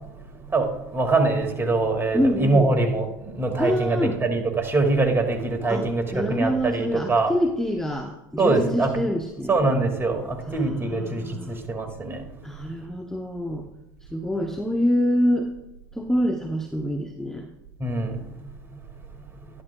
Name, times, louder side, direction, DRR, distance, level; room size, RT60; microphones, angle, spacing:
voice 1, 0.5-7.3 8.4-8.9 9.5-12.2 17.8-18.2, right 3 dB, 20° right, 3 dB, 1.9 m, -23 dB
voice 2, 2.1-2.7 3.6-4.2 5.7-9.7 10.4-11.6 12.4-13.7 14.1-15.5 15.9-17.5, equal, 5° left, 3 dB, 0.7 m, -26 dB
12.0 x 11.0 x 2.2 m, 0.92 s
hypercardioid pair, 85°, 12 cm